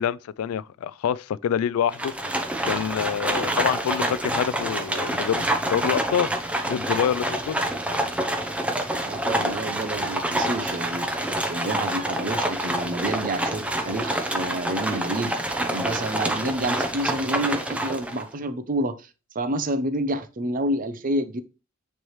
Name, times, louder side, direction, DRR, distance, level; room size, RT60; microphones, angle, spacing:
voice 1, 0.0-2.1 2.6-6.3 6.7-7.6, left 8 dB, 85° left, 0.3 m, -26 dB
Livestock farm animals working animals, 1.9-18.3, right 1 dB, 5° right, 0.7 m, -27 dB
voice 2, 9.0-15.4 15.7-19.1 19.3-21.4, right 1 dB, 40° right, 0.7 m, -29 dB
9.2 x 3.4 x 3.1 m
head